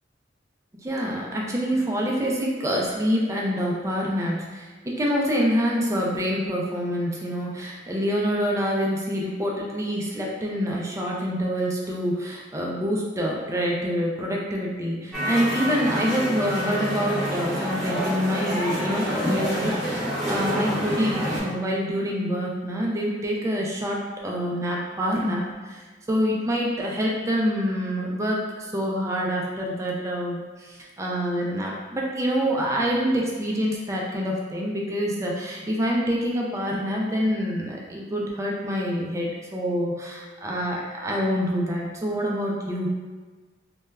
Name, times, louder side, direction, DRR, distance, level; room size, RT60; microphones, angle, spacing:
voice 1, 0.8-25.8 26.1-42.9, equal, 15° right, -2 dB, 0.3 m, -26 dB
sound 1, 15.1-21.4, equal, ahead, 0.8 m, -27 dB
2.2 x 2.0 x 3.3 m, 1.3 s
head